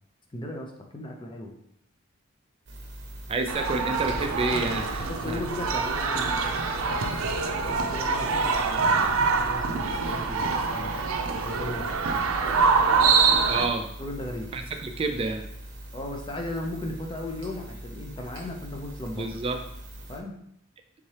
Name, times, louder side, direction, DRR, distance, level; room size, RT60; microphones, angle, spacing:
voice 1, 0.3-1.5 5.1-6.6 7.6-11.0 11.4-11.9 14.0-14.5 15.9-19.3 20.1-20.3, left 1 dB, 25° left, 2 dB, 0.6 m, -36 dB
sound 1, 2.7-20.2, right 1 dB, 55° right, 0.8 m, -42 dB
voice 2, 3.3-5.4 13.5-13.9 14.5-15.5 19.1-19.6, right 3 dB, 25° right, 6 dB, 0.3 m, -29 dB
sound 2, 3.5-13.7, right 4 dB, 85° right, 0.5 m, -25 dB
4.2 x 3.6 x 3.3 m, 0.74 s
head